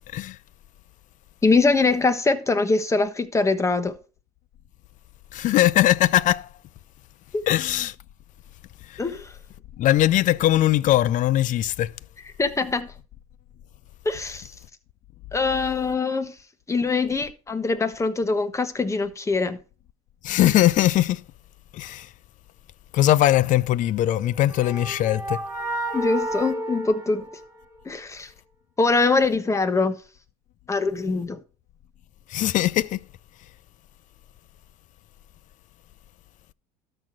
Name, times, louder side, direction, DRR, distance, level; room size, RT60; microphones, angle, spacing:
voice 1, 1.4-4.0 7.3-7.4 9.0-9.3 12.4-12.9 14.0-14.5 15.3-16.3 16.7-19.6 25.9-27.3 27.8-28.3 28.8-30.0 30.7-31.4, left 3 dB, 15° left, 1.2 m, -23 dB
voice 2, 5.3-6.5 7.5-7.9 8.9-9.0 9.8-11.9 20.2-21.2 21.7-22.1 22.9-25.4 32.3-33.0, left 13 dB, 50° left, 0.5 m, -20 dB
sound 1, 24.0-27.9, right 1 dB, 15° right, 3.4 m, -31 dB
13.0 x 4.3 x 6.1 m
supercardioid pair, 100°, 17 cm